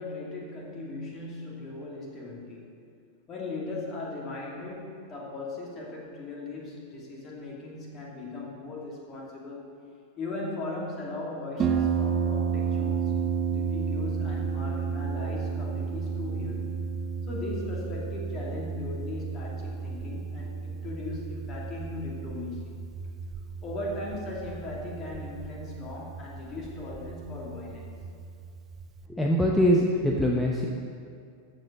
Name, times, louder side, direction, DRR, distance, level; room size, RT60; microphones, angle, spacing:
voice 1, 0.0-2.7 3.3-9.7 10.2-13.1 13.5-16.8 17.2-22.9 23.6-27.9, left 2 dB, 30° left, -2 dB, 2.5 m, -38 dB
Harp, 11.6-29.1, right 6 dB, 25° right, 0.7 m, -32 dB
voice 2, 29.1-30.7, equal, 5° left, -1 dB, 0.8 m, -23 dB
13.5 x 5.2 x 6.6 m, 2.4 s
figure-of-eight pair, 90°, 0 cm